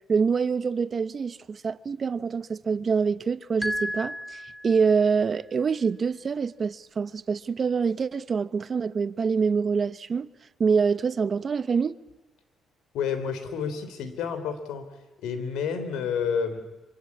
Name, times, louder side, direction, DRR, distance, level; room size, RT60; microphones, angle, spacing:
voice 1, 0.1-10.3 10.6-12.0, right 5 dB, 45° right, 0.9 m, -25 dB
sound 1, 3.6-5.2, equal, 5° left, 2.6 m, -33 dB
voice 2, 12.9-14.9 15.2-16.6, left 6 dB, 90° left, 3.5 m, -29 dB
26.0 x 25.0 x 8.6 m
cardioid pair, 90°, 0 cm